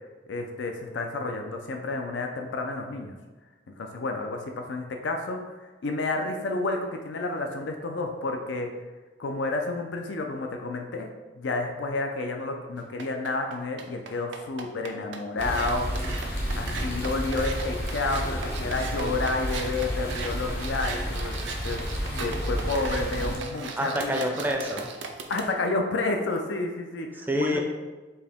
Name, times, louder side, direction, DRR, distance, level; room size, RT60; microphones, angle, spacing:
voice 1, 0.3-3.1 3.7-8.7 9.2-11.1 11.3-15.9 16.1-21.3 21.6-21.8 22.2-24.1 25.3-27.6, left 3 dB, 85° left, 4 dB, 0.5 m, -30 dB
sound 1, 12.8-25.5, right 4 dB, 85° right, 0.5 m, -38 dB
sound 2, 15.4-23.4, equal, 65° left, 0.8 m, -31 dB
voice 2, 18.4-18.7 19.0-19.1 23.8-24.9 27.3-27.6, equal, 10° right, 2 dB, 0.4 m, -28 dB
4.5 x 2.8 x 3.5 m, 1.2 s
head